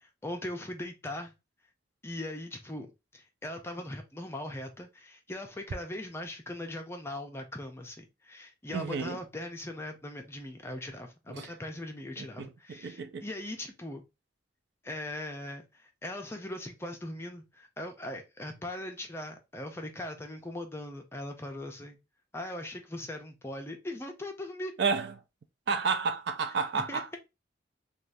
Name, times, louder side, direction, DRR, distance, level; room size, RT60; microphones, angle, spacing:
voice 1, 0.0-1.3 2.0-2.9 3.1-14.0 14.8-22.0 22.3-24.7 26.7-27.2, left 1 dB, 15° left, 0.5 m, -40 dB
voice 2, 8.7-9.2 11.3-11.4 12.2-13.2 24.8-25.1 25.7-27.1, right 5 dB, 65° right, 0.4 m, -31 dB
2.6 x 2.4 x 3.3 m
head